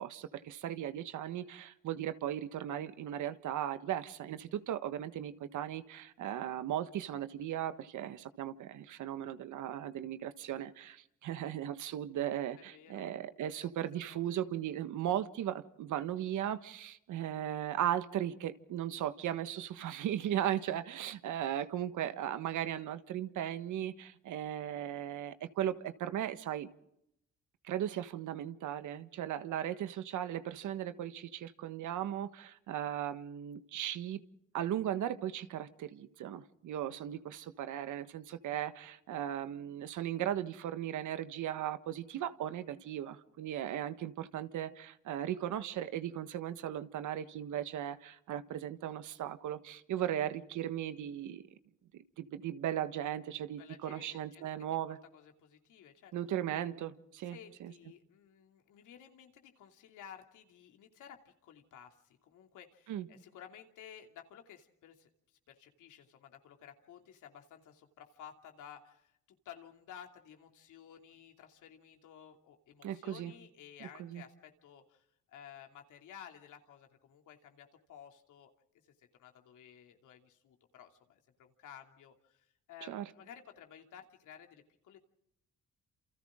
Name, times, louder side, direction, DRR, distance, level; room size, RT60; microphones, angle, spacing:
voice 1, 0.0-26.7 27.6-34.2 34.5-51.4 51.9-55.0 56.1-57.7 62.9-63.1 72.8-73.3 74.0-74.2 82.9-83.1, right 11 dB, 80° right, 11 dB, 1.5 m, -37 dB
voice 2, 12.6-13.1 13.4-13.7 14.1-14.2 53.4-56.1 57.2-65.1 65.5-69.1 69.4-78.5 79.0-85.0, left 9 dB, 80° left, 4 dB, 2.9 m, -54 dB
28.5 x 28.0 x 3.7 m, 0.78 s
cardioid pair, 90°, 30 cm